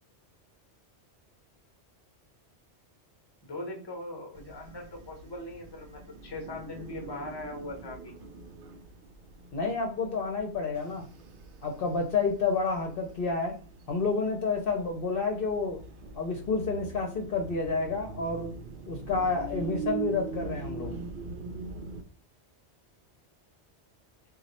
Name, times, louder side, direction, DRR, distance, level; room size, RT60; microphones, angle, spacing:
voice 1, 3.4-8.1, left 1 dB, 25° left, 2 dB, 0.8 m, -40 dB
sound 1, 4.3-22.0, right 4 dB, 60° right, 0.6 m, -42 dB
voice 2, 9.5-11.0 11.6-13.5 13.9-15.8 16.2-18.5 18.9-20.9, left 4 dB, 60° left, 2 dB, 0.8 m, -29 dB
3.1 x 2.4 x 4.0 m, 0.39 s
omnidirectional pair, 1.2 m